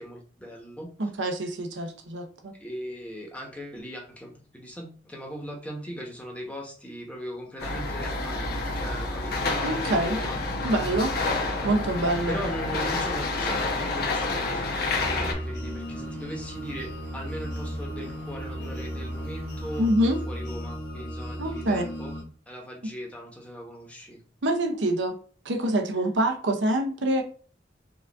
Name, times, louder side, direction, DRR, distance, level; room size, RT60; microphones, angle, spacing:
voice 1, 0.0-0.9 2.6-10.4 12.3-19.9 20.3-22.1 22.5-24.2, equal, 10° left, -1 dB, 0.9 m, -39 dB
voice 2, 1.0-2.5 9.6-10.2 10.6-11.1 11.6-12.4 19.8-20.2 21.4-21.9 24.4-25.2 25.4-27.2, right 1 dB, 80° right, 5 dB, 0.7 m, -25 dB
sound 1, 7.6-15.3, left 3 dB, 55° left, 0.9 m, -29 dB
sound 2, 7.6-19.9, right 3 dB, 45° right, 0.4 m, -43 dB
sound 3, 15.0-22.2, equal, 80° left, 1.7 m, -35 dB
4.9 x 2.5 x 3.4 m, 0.42 s
head